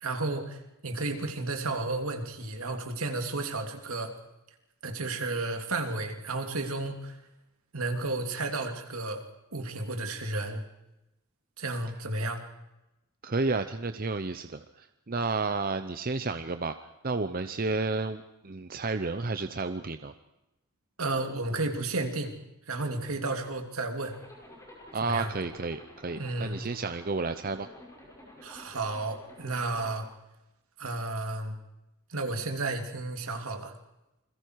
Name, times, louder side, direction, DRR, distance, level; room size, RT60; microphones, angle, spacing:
voice 1, 0.0-4.1 4.8-7.2 7.7-9.2 9.5-10.6 11.6-12.4 21.0-22.3 22.7-24.2 25.0-25.3 26.2-26.6 28.4-30.1 30.8-31.6 32.1-33.7, right 2 dB, 75° right, 5 dB, 2.8 m, -32 dB
voice 2, 13.2-16.8 17.0-20.1 24.9-27.7, right 3 dB, 40° right, 9 dB, 0.7 m, -31 dB
Zipper (clothing), 24.0-30.0, left 1 dB, 15° left, 5.9 m, -51 dB
28.5 x 22.0 x 4.7 m, 0.93 s
head